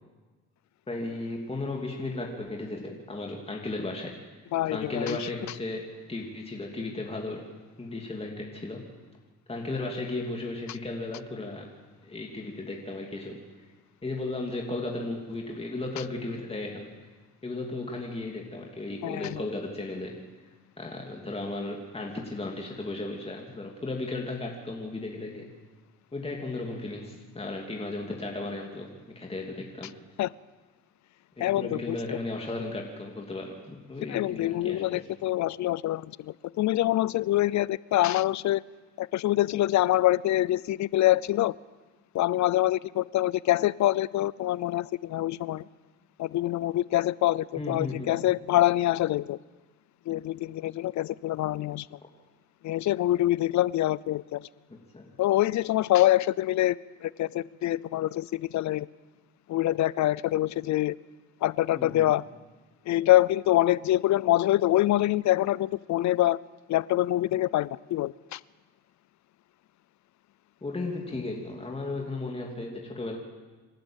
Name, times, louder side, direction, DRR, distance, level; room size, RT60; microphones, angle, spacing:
voice 1, 0.9-4.1 4.7-7.5 7.8-8.9 9.5-11.7 12.0-13.4 14.0-16.9 17.4-20.2 20.8-25.5 26.1-29.9 31.4-35.1 47.6-48.1 54.7-55.1 61.7-62.2 70.6-73.2, left 2 dB, 20° left, 3.0 m, -35 dB
voice 2, 4.5-5.3 19.0-19.4 30.2-30.3 31.4-32.2 34.1-38.6 39.0-41.6 42.1-45.6 46.2-49.4 50.1-52.0 52.6-54.5 55.2-58.9 59.5-61.0 61.4-62.2 62.9-66.4 66.7-68.4, left 15 dB, 70° left, 0.6 m, -25 dB
27.0 x 12.0 x 9.0 m
cardioid pair, 90°, 30 cm